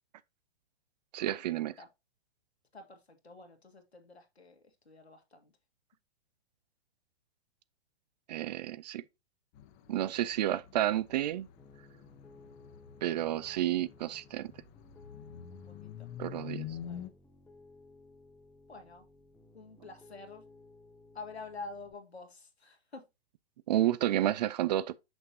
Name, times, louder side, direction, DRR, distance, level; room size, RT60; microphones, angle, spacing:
voice 1, 1.1-1.7 8.3-9.0 9.9-11.5 13.0-14.5 16.2-16.7 23.7-25.0, right 13 dB, 40° right, 0.5 m, -30 dB
voice 2, 2.7-5.5 15.5-17.1 18.7-19.1 19.5-20.4 21.1-23.0, left 3 dB, 85° left, 1.8 m, -48 dB
sound 1, 9.5-17.1, left 10 dB, 30° left, 0.9 m, -47 dB
Piano, 11.6-21.9, left 3 dB, 5° left, 0.7 m, -58 dB
6.6 x 6.2 x 2.8 m
figure-of-eight pair, 115°, 32 cm